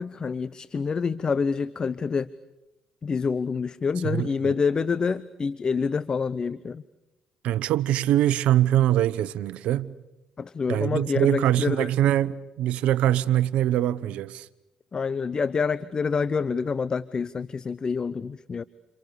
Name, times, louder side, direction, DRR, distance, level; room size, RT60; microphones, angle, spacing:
voice 1, 0.0-2.3 3.0-6.8 10.4-11.9 14.9-18.6, left 5 dB, 40° left, 0.9 m, -27 dB
voice 2, 4.0-4.5 7.4-9.9 10.7-14.5, right 12 dB, 70° right, 1.0 m, -23 dB
29.5 x 29.0 x 6.8 m
hypercardioid pair, 60°, 2 cm